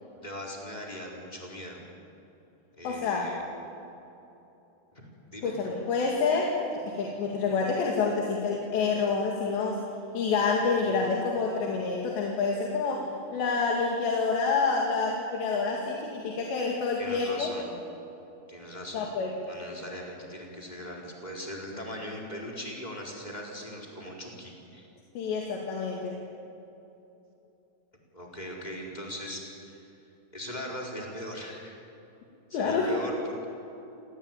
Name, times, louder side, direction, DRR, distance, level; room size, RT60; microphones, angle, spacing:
voice 1, 0.2-1.8 2.8-3.4 4.9-5.6 17.0-17.7 18.5-19.1 19.5-24.9 28.1-29.8 30.3-31.8 32.5-33.4, equal, 10° left, -1 dB, 4.1 m, -40 dB
voice 2, 2.8-3.3 5.4-6.6 6.9-9.8 10.1-17.5 18.9-19.3 25.2-26.2 32.5-33.0, left 4 dB, 80° left, -1 dB, 4.5 m, -28 dB
29.5 x 18.5 x 9.1 m, 3.0 s
omnidirectional pair, 4.9 m